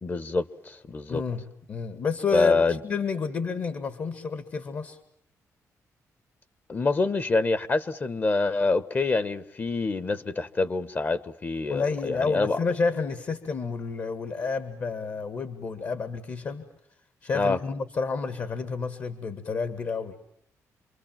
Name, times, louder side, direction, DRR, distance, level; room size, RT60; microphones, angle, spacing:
voice 1, 0.0-1.2 2.3-2.8 6.7-12.6 17.3-17.6, left 3 dB, 30° left, 1.2 m, -26 dB
voice 2, 1.1-5.0 11.7-16.7 17.2-20.2, left 5 dB, 50° left, 1.9 m, -30 dB
28.0 x 23.5 x 7.5 m
cardioid pair, 115°, 6 cm